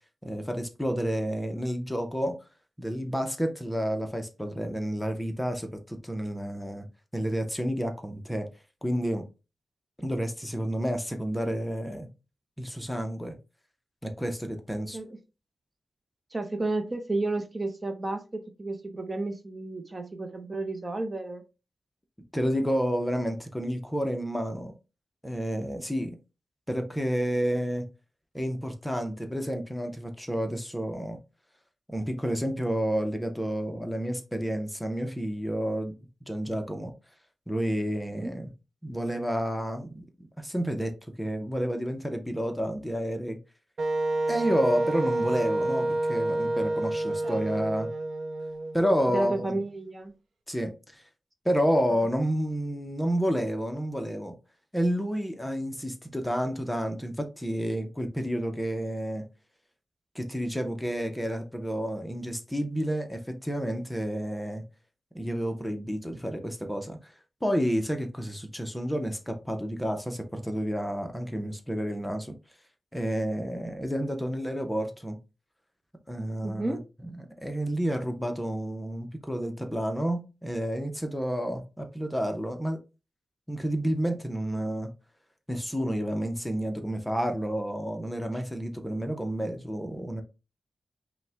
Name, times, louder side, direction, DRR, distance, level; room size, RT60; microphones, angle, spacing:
voice 1, 0.2-2.4 2.8-6.9 7.1-8.5 8.8-9.2 10.0-12.1 12.6-13.4 14.0-15.0 22.3-24.7 25.2-26.2 26.7-27.8 28.3-31.2 31.9-36.0 36.3-36.9 37.5-38.5 38.8-40.0 40.4-40.9 41.2-43.4 44.3-47.9 48.7-49.5 50.5-51.0 51.4-54.3 54.7-59.3 60.1-64.6 65.1-67.1 67.4-72.4 72.9-75.2 76.1-77.1 77.4-82.8 83.5-84.9 85.5-90.2, equal, 5° left, 0.7 m, -30 dB
voice 2, 16.3-21.4 38.1-38.3 47.2-47.7 49.1-50.1 51.9-52.0 76.4-76.8 88.3-88.4, right 2 dB, 30° right, 0.7 m, -32 dB
Wind instrument woodwind instrument, 43.8-49.6, right 2 dB, 75° right, 0.7 m, -29 dB
5.2 x 2.2 x 3.4 m
wide cardioid pair, 80°, 0 cm